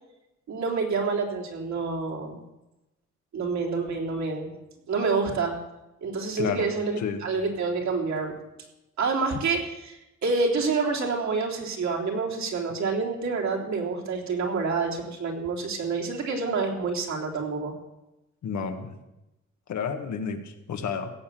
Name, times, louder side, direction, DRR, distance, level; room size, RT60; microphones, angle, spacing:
voice 1, 0.5-2.4 3.3-4.5 4.9-5.5 6.0-8.3 9.0-17.7, right 4 dB, 65° right, -1 dB, 3.6 m, -28 dB
voice 2, 6.4-6.7 7.0-7.2 18.4-18.9 19.7-21.1, left 6 dB, 70° left, 5 dB, 1.7 m, -31 dB
17.5 x 7.4 x 7.7 m, 0.96 s
cardioid pair, 90°, 30 cm